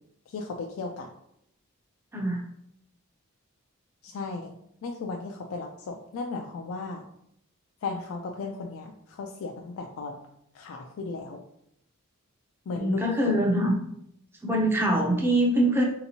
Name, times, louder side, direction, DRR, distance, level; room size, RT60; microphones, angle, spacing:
voice 1, 0.3-1.1 4.0-4.5 4.8-7.1 7.8-10.3 10.5-11.4 12.7-13.5, left 3 dB, 70° left, 2 dB, 0.3 m, -35 dB
voice 2, 12.7-13.7 14.4-15.8, right 1 dB, 10° right, -1 dB, 0.5 m, -24 dB
3.3 x 2.9 x 2.7 m, 0.76 s
head